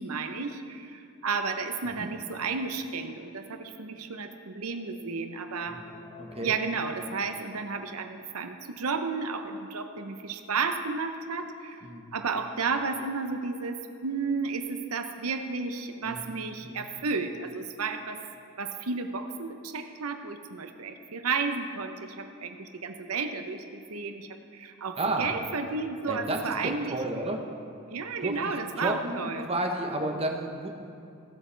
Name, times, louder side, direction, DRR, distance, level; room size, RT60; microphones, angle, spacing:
voice 1, 0.0-5.8 6.4-11.9 12.1-18.2 18.6-24.3 24.5-27.0 27.9-29.5, right 4 dB, 85° right, 7 dB, 0.8 m, -32 dB
sound 1, 5.6-8.2, left 3 dB, 20° left, 0.9 m, -48 dB
voice 2, 6.2-6.5 11.8-12.0 16.0-16.4 16.6-16.9 25.0-25.3 26.1-27.4 28.2-28.4 28.8-30.7, right 2 dB, 30° right, 3 dB, 0.9 m, -32 dB
16.5 x 7.5 x 3.4 m, 2.6 s
head